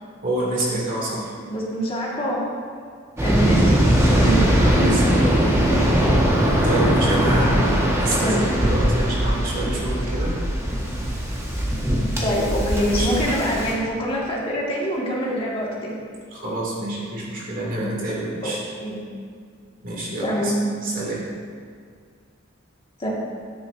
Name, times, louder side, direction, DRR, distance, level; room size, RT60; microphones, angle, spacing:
voice 1, 0.2-1.3 4.3-5.4 6.6-10.4 12.9-13.2 16.3-18.6 19.8-20.5 20.8-21.3, right 1 dB, 45° right, -5 dB, 2.5 m, -27 dB
voice 2, 1.5-2.4 3.2-3.8 4.1-5.0 8.2-8.5 12.2-15.9 18.4-18.5 18.8-19.0 20.2-20.7 23.0-23.1, equal, 30° left, -5 dB, 1.8 m, -25 dB
Waves surf, 3.2-13.7, equal, 15° right, 1.5 m, -20 dB
12.5 x 10.0 x 2.7 m, 2.1 s
head